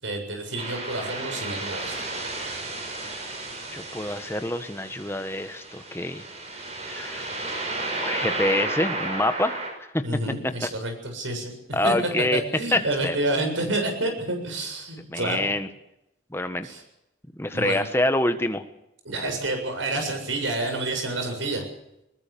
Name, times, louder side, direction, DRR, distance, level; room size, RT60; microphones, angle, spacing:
voice 1, 0.0-1.9 10.0-11.5 11.8-11.9 12.3-15.5 16.6-16.8 17.5-17.8 19.1-21.7, right 2 dB, 85° right, 5 dB, 7.4 m, -29 dB
sound 1, 0.6-9.7, right 2 dB, 35° right, 6.3 m, -33 dB
voice 2, 3.7-6.2 6.7-7.5 8.0-9.6 9.9-10.0 10.6-10.7 11.7-12.4 12.7-13.2 15.1-15.7 16.3-16.7 17.4-18.6, left 1 dB, 15° left, 8 dB, 1.5 m, -26 dB
21.5 x 20.0 x 7.1 m, 0.84 s
head